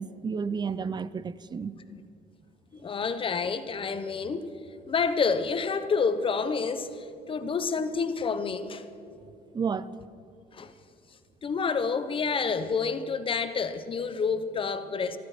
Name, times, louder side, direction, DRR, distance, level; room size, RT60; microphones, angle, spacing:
voice 1, 0.0-1.7 9.5-9.9, right 5 dB, 25° right, 0.5 m, -31 dB
voice 2, 2.7-4.5 4.9-8.9 10.5-10.7 11.4-15.2, left 5 dB, 30° left, 0.9 m, -29 dB
13.5 x 12.5 x 6.0 m
cardioid pair, 110°, 17 cm